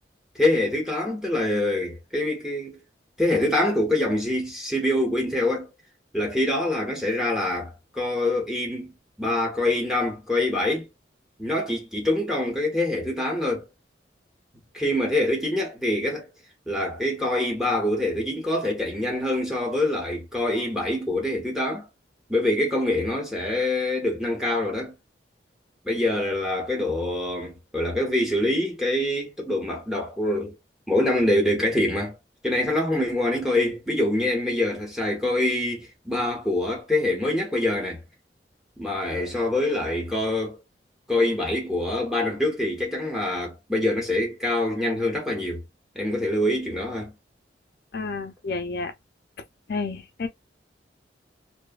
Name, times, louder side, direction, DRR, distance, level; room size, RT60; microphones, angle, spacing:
voice 1, 0.3-2.8 3.2-5.7 6.1-8.9 9.2-10.9 11.4-13.7 14.7-16.3 16.7-21.9 22.3-24.9 25.8-30.5 30.9-32.2 32.4-38.0 38.8-40.6 41.1-45.6 45.9-47.1, left 1 dB, 5° right, 0.9 m, -25 dB
voice 2, 47.9-48.9 49.7-50.3, left 4 dB, 60° left, 0.4 m, -30 dB
2.6 x 2.3 x 2.2 m
head